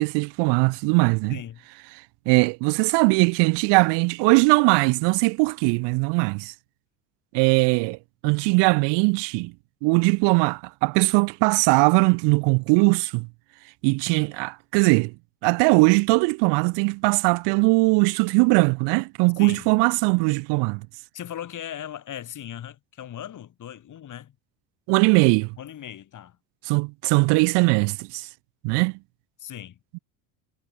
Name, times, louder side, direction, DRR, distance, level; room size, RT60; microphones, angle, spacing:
voice 1, 0.0-1.3 2.3-6.5 7.3-9.5 9.8-13.3 13.8-15.1 15.4-20.9 24.9-25.5 26.7-28.3 28.6-29.0, right 30 dB, 70° right, 0.6 m, -20 dB
voice 2, 1.3-1.7 19.4-19.7 21.1-24.4 25.6-26.4 29.4-29.8, left 10 dB, 45° left, 6.0 m, -38 dB
cardioid pair, 115°, 44 cm